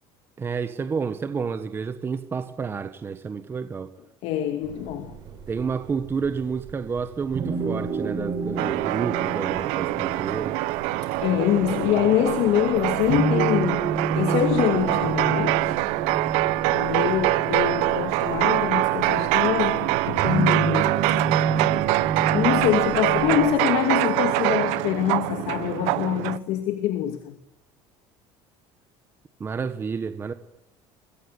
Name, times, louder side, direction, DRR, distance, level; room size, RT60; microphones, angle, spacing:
voice 1, 0.4-3.9 5.5-10.6 16.6-16.9 29.4-30.3, right 5 dB, 20° right, 1.3 m, -30 dB
voice 2, 4.2-5.2 11.0-13.9 14.1-15.8 16.6-21.2 22.3-27.4, left 12 dB, 60° left, 2.4 m, -25 dB
sound 1, 4.6-23.4, right 5 dB, 40° right, 7.7 m, -30 dB
sound 2, 8.6-26.4, right 18 dB, 80° right, 1.1 m, -24 dB
26.0 x 22.0 x 9.8 m
cardioid pair, 155°, 11 cm